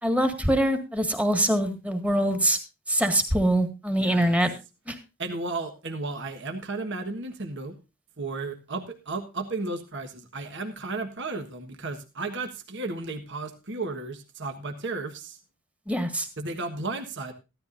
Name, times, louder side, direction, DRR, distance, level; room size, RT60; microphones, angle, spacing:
voice 1, 0.0-2.6 2.9-4.5 4.9-5.0 15.9-16.3, right 1 dB, 5° right, 6 dB, 1.8 m, -24 dB
voice 2, 4.0-4.4 5.2-7.8 8.2-15.4 16.4-17.3, right 3 dB, 55° right, 6 dB, 1.4 m, -34 dB
15.0 x 12.5 x 2.6 m, 0.28 s
head